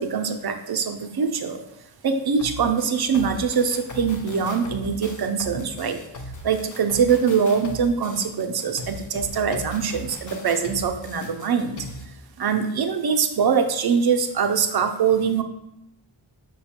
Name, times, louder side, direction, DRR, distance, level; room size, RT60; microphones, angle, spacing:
voice 1, 0.0-1.6 2.0-6.0 6.4-11.9 12.4-15.4, right 6 dB, 55° right, 6 dB, 0.5 m, -23 dB
sound 1, 2.4-12.1, left 1 dB, 40° left, 0.5 m, -38 dB
5.5 x 2.2 x 4.2 m, 0.87 s
wide cardioid pair, 85°, 47 cm